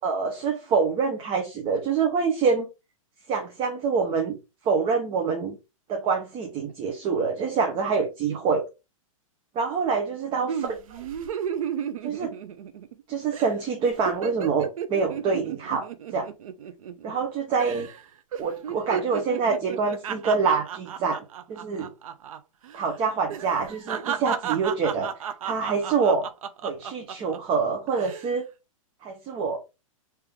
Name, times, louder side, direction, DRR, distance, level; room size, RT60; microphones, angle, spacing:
voice 1, 0.0-2.7 3.3-4.4 4.6-5.6 5.9-8.6 9.5-10.6 12.0-12.3 13.1-16.3 17.0-17.9 18.4-21.9 22.7-25.1 25.4-26.2 26.6-28.5 29.0-29.6, right 5 dB, 30° right, 0.9 m, -26 dB
sound 1, 10.5-13.0 13.3-13.5 13.8-17.3 17.6-18.0 18.3-22.4 22.6-22.8 23.3-27.4 27.9-28.3, right 8 dB, 75° right, 0.6 m, -33 dB
3.7 x 2.8 x 3.5 m
hypercardioid pair, 125°, 18 cm